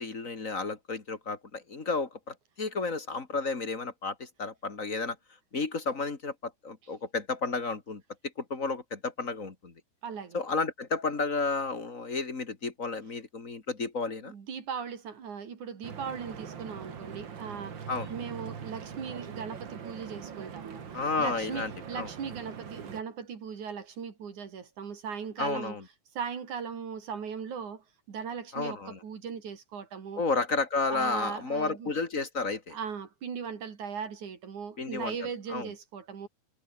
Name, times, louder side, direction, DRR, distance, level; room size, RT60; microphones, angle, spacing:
voice 1, 0.0-5.2 5.5-8.0 8.4-9.7 10.3-14.3 17.9-18.1 20.9-22.1 25.4-25.8 28.5-29.0 30.2-32.8 34.8-35.7, left 4 dB, 25° left, 2.4 m, -32 dB
voice 2, 10.0-10.4 14.2-17.7 18.1-20.9 21.2-25.8 26.2-30.2 30.9-31.9 32.7-36.3, right 6 dB, 65° right, 4.3 m, -38 dB
Stream / Boat Water vehicle, 15.8-23.0, right 7 dB, 40° right, 2.1 m, -42 dB
omnidirectional pair, 3.9 m